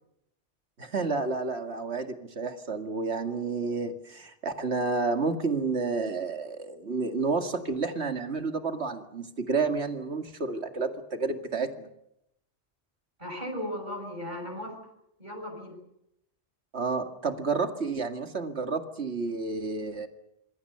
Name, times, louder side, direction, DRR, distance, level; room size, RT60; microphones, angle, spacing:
voice 1, 0.8-11.9 16.7-20.1, right 4 dB, 70° right, 6 dB, 2.4 m, -30 dB
voice 2, 13.2-14.8 15.2-15.8, equal, 40° right, 1 dB, 6.7 m, -36 dB
26.5 x 22.0 x 6.9 m, 0.82 s
omnidirectional pair, 1.2 m